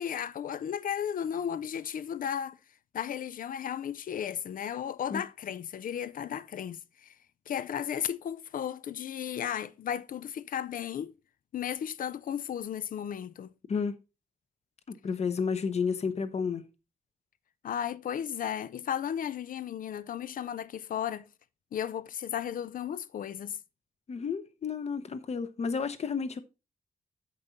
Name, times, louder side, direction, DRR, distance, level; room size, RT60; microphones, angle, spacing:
voice 1, 0.0-2.6 2.9-7.2 7.5-11.1 11.5-13.5 17.6-21.3 21.7-23.6, left 9 dB, 90° left, 0.5 m, -34 dB
voice 2, 14.9-16.7 24.1-26.4, left 5 dB, 50° left, 0.8 m, -31 dB
8.0 x 5.4 x 4.1 m
wide cardioid pair, 155°, 14 cm